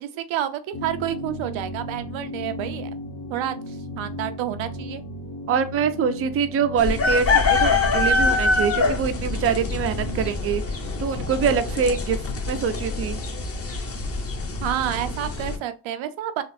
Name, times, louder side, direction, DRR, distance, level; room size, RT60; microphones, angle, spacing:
voice 1, 0.0-2.9 3.3-5.0 14.6-16.4, right 11 dB, 80° right, 0.6 m, -29 dB
sound 1, 0.7-10.3, equal, 55° left, 1.0 m, -36 dB
voice 2, 5.5-10.6 11.0-12.2 12.5-13.2, right 6 dB, 30° right, 0.4 m, -24 dB
sound 2, 6.8-15.6, left 3 dB, 30° left, 0.8 m, -24 dB
4.1 x 2.4 x 2.6 m
cardioid pair, 105°, 47 cm